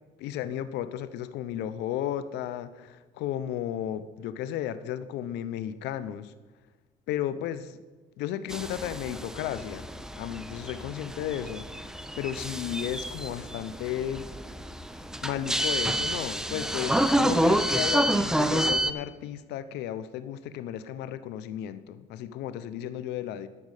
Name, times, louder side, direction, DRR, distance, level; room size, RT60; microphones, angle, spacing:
voice 1, 0.2-6.3 7.1-7.8 8.2-9.9 10.2-11.6 12.2-14.3 15.2-23.5, left 11 dB, 85° left, 14 dB, 0.6 m, -34 dB
sound 1, 8.5-18.9, right 1 dB, 5° right, 0.6 m, -28 dB
12.5 x 6.3 x 6.5 m, 1.3 s
cardioid pair, 110°, 17 cm